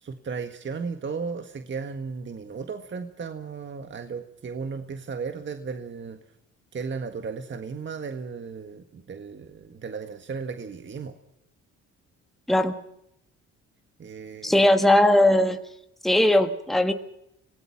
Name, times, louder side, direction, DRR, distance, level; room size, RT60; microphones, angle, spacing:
voice 1, 0.0-6.2 6.7-11.1 14.0-14.6, right 5 dB, 40° right, 7 dB, 1.7 m, -35 dB
voice 2, 14.4-15.6 16.0-16.9, left 1 dB, ahead, 6 dB, 1.6 m, -19 dB
26.5 x 18.5 x 5.9 m, 0.78 s
cardioid pair, 90°, 30 cm